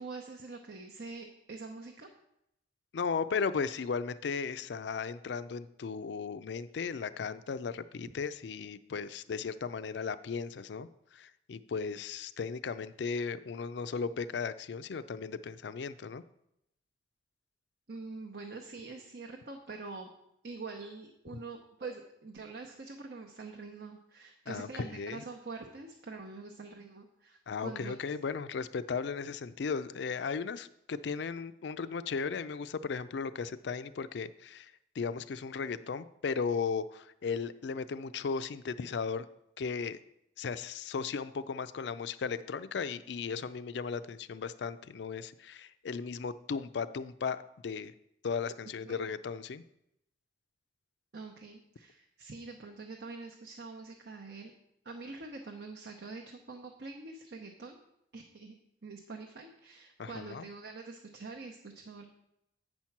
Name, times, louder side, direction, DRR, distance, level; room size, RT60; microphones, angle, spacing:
voice 1, 0.0-2.1 17.9-20.1 20.4-28.0 48.8-49.0 51.1-54.5 54.8-57.8 58.1-58.5 58.8-62.0, right 3 dB, 65° right, 2 dB, 0.8 m, -45 dB
voice 2, 2.9-16.2 24.5-25.2 27.5-39.3 39.6-40.0 40.4-47.9 48.2-49.6 60.0-60.5, left 5 dB, 75° left, 13 dB, 0.4 m, -36 dB
8.9 x 4.4 x 5.9 m, 0.79 s
head